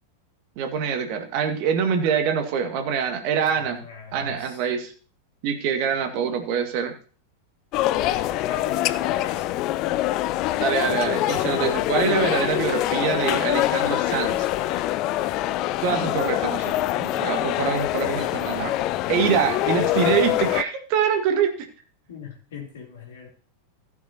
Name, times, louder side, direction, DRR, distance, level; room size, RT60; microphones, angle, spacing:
voice 1, 0.6-3.8 4.1-4.9 5.4-6.9 10.5-14.9 15.8-18.8 19.1-21.5, right 7 dB, 45° right, 1.9 m, -25 dB
voice 2, 3.4-4.7 7.9-9.5 22.1-23.3, left 5 dB, 60° left, 3.4 m, -40 dB
sound 1, 7.7-20.6, left 15 dB, 40° left, 0.4 m, -24 dB
15.5 x 9.4 x 2.9 m
figure-of-eight pair, 90°, 0 cm